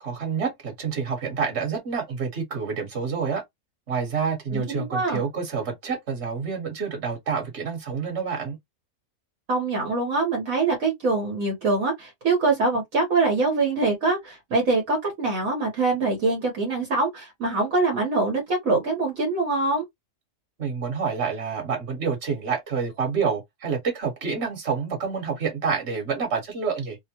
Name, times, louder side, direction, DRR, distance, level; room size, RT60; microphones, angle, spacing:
voice 1, 0.0-3.4 3.9-8.6 20.6-27.0, right 5 dB, 50° right, 1.6 m, -28 dB
voice 2, 4.5-5.2 9.5-19.8, right 3 dB, 65° right, 1.5 m, -24 dB
3.3 x 2.1 x 2.8 m
omnidirectional pair, 1.5 m